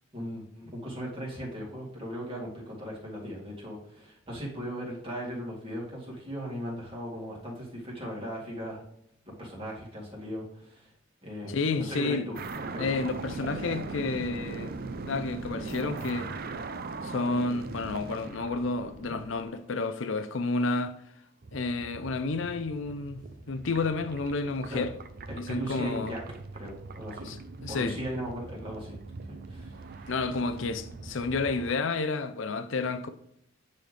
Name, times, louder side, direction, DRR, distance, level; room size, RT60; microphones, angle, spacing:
voice 1, 0.1-8.8 9.4-10.9 11.2-12.9 13.3-13.4 24.7-24.8 25.5-26.2 26.6-27.3 27.7-29.0 29.3-30.1, equal, 25° right, 2.3 m, -38 dB
voice 2, 11.5-12.3 12.8-14.7 15.1-16.3 17.0-21.0 21.5-24.9 25.4-26.1 27.3-28.0 30.1-33.1, left 3 dB, 70° left, 0.6 m, -30 dB
sound 1, 12.3-19.4 21.4-31.8, right 3 dB, 45° right, 0.5 m, -40 dB
9.4 x 4.2 x 3.3 m
head